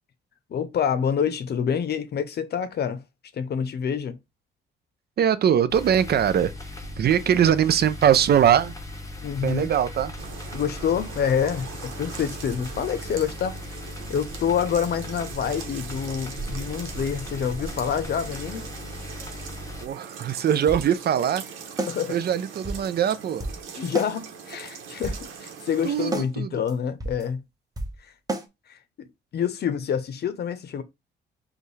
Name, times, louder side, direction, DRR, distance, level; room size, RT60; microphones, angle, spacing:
voice 1, 0.5-3.0 3.3-4.2 9.2-9.7 10.5-13.8 14.1-18.7 21.9-22.2 23.7-27.4 28.7-28.8 29.3-30.8, left 7 dB, 55° left, 0.7 m, -27 dB
voice 2, 5.2-6.5 7.0-8.7 9.4-10.1 19.8-21.4 22.1-23.5 25.8-26.6, right 9 dB, 55° right, 0.6 m, -21 dB
sound 1, 5.7-19.9, left 1 dB, 15° left, 1.1 m, -38 dB
sound 2, 10.2-26.2, right 6 dB, 90° right, 1.0 m, -41 dB
sound 3, 20.1-20.2 20.7-20.9 21.2-21.3 21.8-22.0 22.3-22.4 22.6-22.9 23.4-23.6 23.9-24.1 24.5-24.6 24.9-25.2 25.6-25.7 26.1-26.3 26.7-26.8 27.0-27.2 27.8-28.0 28.3-28.5, right 2 dB, 20° right, 1.1 m, -31 dB
5.2 x 2.4 x 3.2 m
cardioid pair, 90°, 20 cm